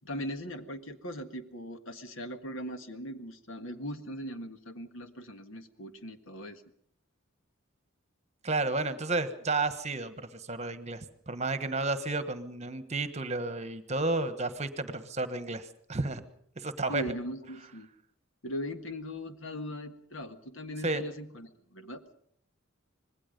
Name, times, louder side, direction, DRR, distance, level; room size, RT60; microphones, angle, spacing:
voice 1, 0.0-6.6 16.9-17.9 18.4-22.0, equal, 70° left, 8 dB, 1.7 m, -39 dB
voice 2, 8.4-16.2 16.6-17.0 20.8-21.0, right 3 dB, 35° right, 11 dB, 1.3 m, -32 dB
25.5 x 20.0 x 5.3 m, 0.66 s
head